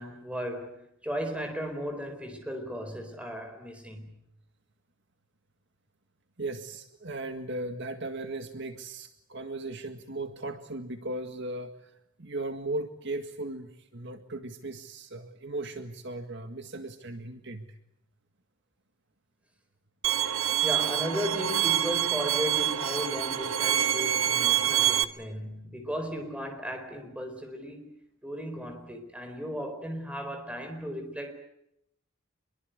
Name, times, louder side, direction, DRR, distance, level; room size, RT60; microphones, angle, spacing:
voice 1, 0.0-4.1 20.6-28.0 28.2-31.3, equal, 5° right, 4.4 m, -36 dB
voice 2, 6.4-11.9 12.2-17.7, right 2 dB, 60° right, 1.9 m, -37 dB
Bowed string instrument, 20.0-25.0, right 11 dB, 85° right, 1.2 m, -26 dB
26.0 x 22.5 x 8.1 m
head